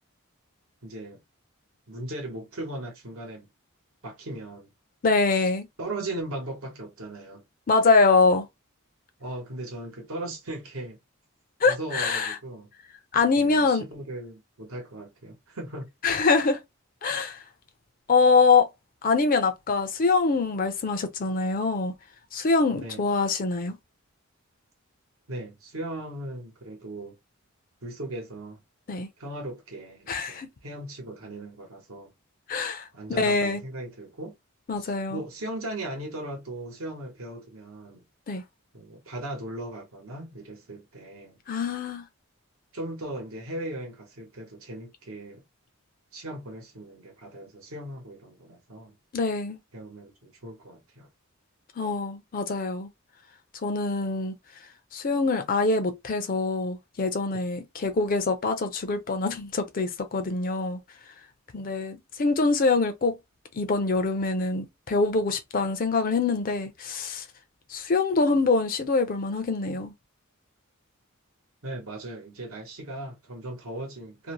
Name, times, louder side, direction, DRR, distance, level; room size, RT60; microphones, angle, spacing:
voice 1, 0.8-1.2 1.9-3.5 4.0-4.7 5.8-7.4 9.2-11.0 11.6-12.7 13.4-15.9 22.7-23.1 25.3-27.2 27.8-28.6 29.2-32.1 32.9-34.3 34.8-38.0 38.7-41.4 42.7-45.4 46.1-48.9 49.7-51.1 71.6-74.3, right 1 dB, 75° right, 1.0 m, -38 dB
voice 2, 5.0-5.7 7.7-8.5 11.6-12.4 13.1-13.8 16.0-16.6 17.0-17.4 18.1-18.7 19.0-21.9 22.3-23.8 28.9-29.1 30.1-30.5 32.5-33.6 34.7-35.2 38.3-38.4 41.5-42.0 49.1-49.6 51.8-52.9 53.6-54.3 54.9-60.8 61.5-63.2 63.5-67.2 67.7-69.9, left 4 dB, 40° left, 0.4 m, -24 dB
2.6 x 2.1 x 2.9 m
head